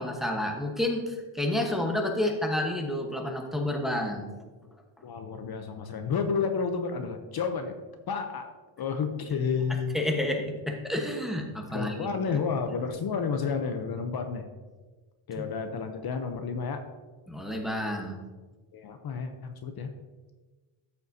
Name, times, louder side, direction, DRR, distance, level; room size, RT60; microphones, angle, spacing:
voice 1, 0.0-4.3 9.9-12.4 12.7-12.8 15.4-15.5 17.3-18.2, left 1 dB, ahead, 1 dB, 1.1 m, -30 dB
voice 2, 5.0-7.7 8.1-8.5 8.8-10.0 11.7-14.5 15.3-16.8 18.7-19.9, left 5 dB, 50° left, 6 dB, 0.7 m, -31 dB
13.5 x 6.9 x 2.7 m, 1.3 s
cardioid pair, 145°, 50 cm